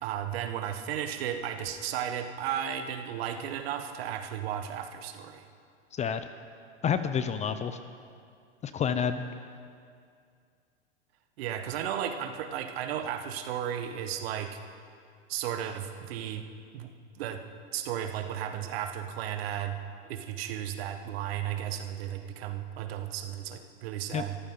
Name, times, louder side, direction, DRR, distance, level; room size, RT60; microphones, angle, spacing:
voice 1, 0.0-5.4 11.4-14.6 15.3-16.4 16.7-16.9 17.1-17.4 17.7-19.8 20.1-24.4, right 9 dB, 60° right, 7 dB, 1.5 m, -34 dB
voice 2, 5.9-6.3 6.8-7.8 8.6-9.2 24.1-24.2, left 7 dB, 20° left, 11 dB, 0.6 m, -29 dB
23.5 x 14.5 x 3.9 m, 2.3 s
hypercardioid pair, 105°, 34 cm